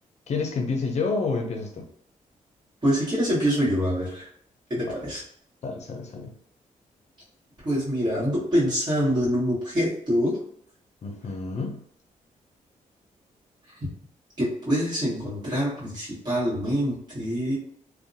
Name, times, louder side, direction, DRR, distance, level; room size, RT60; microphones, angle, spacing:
voice 1, 0.3-1.9 5.6-6.3 11.0-11.8, left 4 dB, 55° left, 3 dB, 0.5 m, -29 dB
voice 2, 2.8-4.3 4.7-5.2 7.6-10.4 14.4-17.6, equal, 30° right, -9 dB, 1.4 m, -25 dB
2.6 x 2.2 x 2.6 m, 0.67 s
cardioid pair, 100°, 14 cm